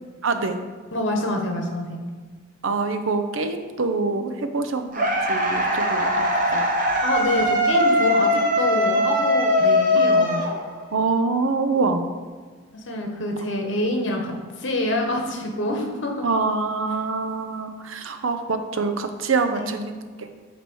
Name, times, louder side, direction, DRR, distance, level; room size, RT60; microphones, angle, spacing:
voice 1, 0.2-0.6 2.6-6.6 10.9-12.1 16.2-20.3, right 4 dB, 75° right, 7 dB, 0.6 m, -25 dB
voice 2, 0.9-2.0 7.0-10.4 12.8-14.3 14.6-16.2 19.5-19.8, left 1 dB, 60° left, 2 dB, 1.2 m, -26 dB
sound 1, 4.9-11.0, left 1 dB, 40° right, 0.8 m, -21 dB
8.2 x 3.0 x 6.2 m, 1.5 s
head